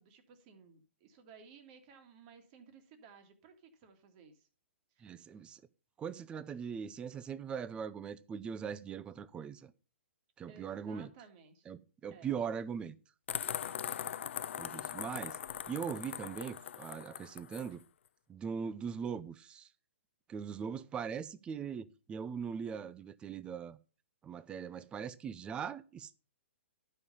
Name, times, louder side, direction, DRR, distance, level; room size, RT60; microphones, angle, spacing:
voice 1, 0.0-4.5 5.0-5.2 10.5-11.7 12.1-12.3, right 6 dB, 40° right, 2.1 m, -58 dB
voice 2, 5.0-5.6 6.0-9.7 10.4-11.1 11.7-13.0 14.6-15.4 15.7-17.8 18.3-19.7 20.3-23.8 24.2-26.2, right 7 dB, 15° right, 0.5 m, -40 dB
sound 1, 13.3-17.7, left 9 dB, 70° left, 0.4 m, -40 dB
12.0 x 5.6 x 5.4 m
hypercardioid pair, 140°, 7 cm